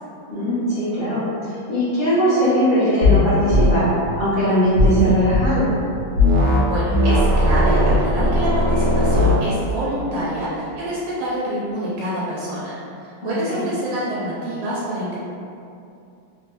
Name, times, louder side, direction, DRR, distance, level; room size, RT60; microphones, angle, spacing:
voice 1, 0.3-3.9 4.2-5.7 13.2-13.6, equal, 50° left, -13 dB, 0.6 m, -20 dB
sound 1, 3.0-3.2 3.5-3.7 4.8-5.5 6.2-6.6 6.9-9.4, left 1 dB, 70° right, 1.0 m, -16 dB
voice 2, 6.6-15.2, right 1 dB, 90° right, -8 dB, 1.4 m, -26 dB
3.5 x 2.2 x 2.9 m, 2.6 s
omnidirectional pair, 2.0 m